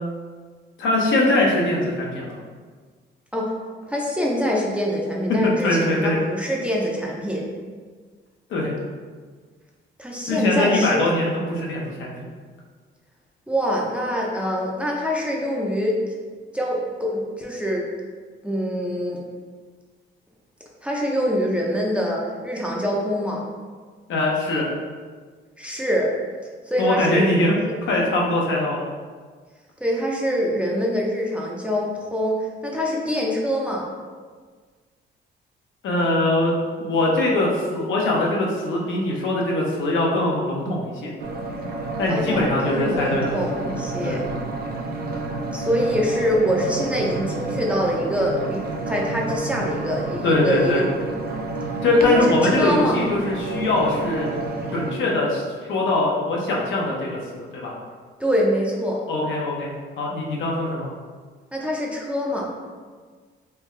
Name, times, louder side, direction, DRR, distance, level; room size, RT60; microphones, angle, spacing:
voice 1, 0.8-2.3 5.4-6.2 8.5-8.7 10.3-12.1 24.1-24.7 26.8-28.8 35.8-41.1 42.0-43.4 44.0-44.2 50.2-50.8 51.8-54.3 54.7-57.7 59.1-59.7 60.0-60.9, left 2 dB, 75° left, -2 dB, 0.7 m, -22 dB
voice 2, 3.9-7.5 10.0-11.0 13.5-16.0 16.5-17.9 18.4-19.2 20.8-23.5 25.6-26.1 26.7-27.3 27.7-27.8 29.8-33.9 42.1-44.2 45.5-50.9 52.0-53.0 58.2-59.0 61.5-62.5, equal, 5° right, -3 dB, 0.5 m, -24 dB
sound 1, 41.2-54.9, right 3 dB, 50° right, 0.5 m, -30 dB
3.4 x 2.3 x 3.1 m, 1.5 s
cardioid pair, 90°, 20 cm